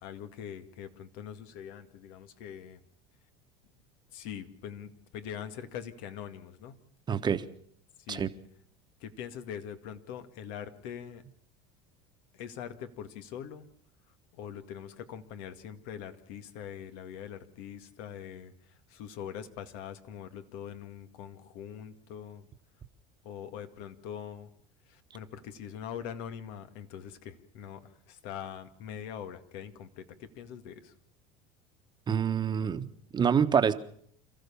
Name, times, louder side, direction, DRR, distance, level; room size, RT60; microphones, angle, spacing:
voice 1, 0.0-2.8 4.1-6.7 8.0-8.3 9.0-11.2 12.3-13.7 14.3-22.5 23.2-24.5 24.9-30.9, left 9 dB, 70° left, 2.0 m, -43 dB
voice 2, 7.1-7.5 8.1-8.3 32.1-32.9 33.1-33.7, right 7 dB, 30° right, 1.4 m, -26 dB
27.5 x 14.5 x 7.2 m
supercardioid pair, 105°, 15 cm